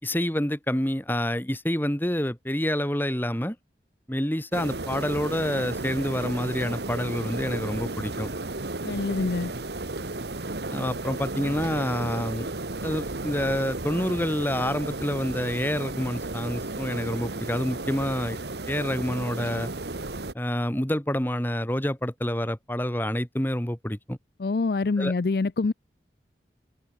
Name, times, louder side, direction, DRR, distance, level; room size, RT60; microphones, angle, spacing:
voice 1, 0.0-3.6 4.1-8.3 10.7-12.5 12.8-18.4 18.7-19.7 20.3-24.2 25.0-25.1, equal, 10° left, 2.1 m, -28 dB
sound 1, 4.5-20.3, right 2 dB, 75° right, 1.6 m, -34 dB
voice 2, 8.8-9.5 24.4-25.7, left 3 dB, 60° left, 0.5 m, -25 dB
open air
head